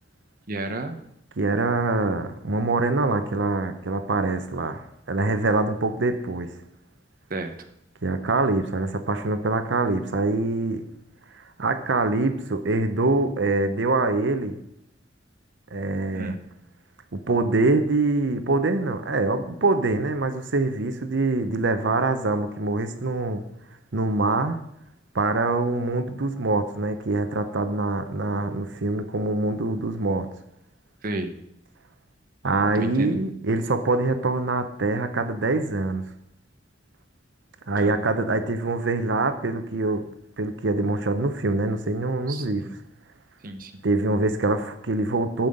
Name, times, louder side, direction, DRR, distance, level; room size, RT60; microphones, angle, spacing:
voice 1, 0.5-1.0 7.3-7.5 16.1-16.4 31.0-31.3 32.7-33.2 37.8-38.1 42.3-42.7 43.4-43.8, right 2 dB, 50° right, 6 dB, 0.8 m, -32 dB
voice 2, 1.4-4.8 5.1-6.5 8.0-10.8 11.6-14.6 15.7-16.4 17.1-23.4 23.9-24.6 25.1-30.3 32.4-36.0 37.7-40.1 40.4-42.7 43.8-45.5, right 2 dB, 85° right, 9 dB, 0.8 m, -24 dB
8.9 x 5.6 x 7.8 m, 0.76 s
head